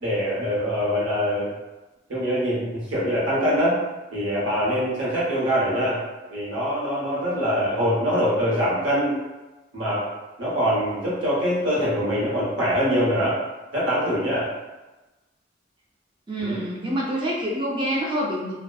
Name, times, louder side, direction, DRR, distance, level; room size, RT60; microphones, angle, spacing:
voice 1, 0.0-1.5 2.1-3.8 4.1-6.0 6.3-9.1 9.7-10.0 10.4-13.4 13.7-14.5 16.4-16.6, equal, 90° right, -7 dB, 0.9 m, -23 dB
voice 2, 16.3-18.5, equal, 25° right, -4 dB, 0.4 m, -26 dB
2.7 x 2.0 x 2.3 m, 1.1 s
head